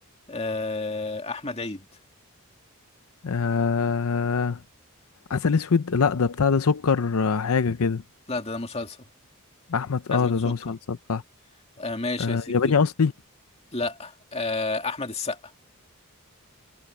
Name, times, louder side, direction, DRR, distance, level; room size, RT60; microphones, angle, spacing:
voice 1, 0.3-1.9 8.3-9.0 10.1-10.5 11.8-12.6 13.7-15.4, left 3 dB, 30° left, 2.3 m, -30 dB
voice 2, 3.2-4.6 5.3-8.0 9.7-11.2 12.2-13.1, left 5 dB, 75° left, 0.6 m, -23 dB
head